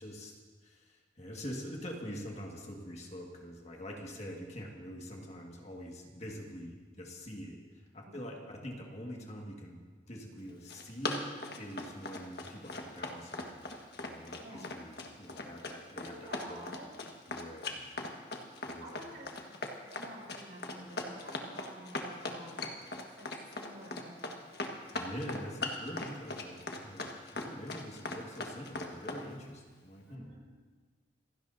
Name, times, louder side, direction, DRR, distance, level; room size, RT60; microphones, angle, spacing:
voice 1, 0.0-9.8 10.1-16.6 17.3-17.8 18.6-19.1 24.9-30.4, equal, 35° left, 0 dB, 1.9 m, -45 dB
voice 2, 8.1-8.4 14.4-14.7 16.1-16.9 18.8-19.4 19.8-22.6 23.1-24.8 30.1-30.5, right 1 dB, 60° right, -3 dB, 5.5 m, -50 dB
Run, 10.5-29.2, left 2 dB, 55° left, 1.6 m, -39 dB
27.5 x 17.0 x 2.7 m, 1.4 s
head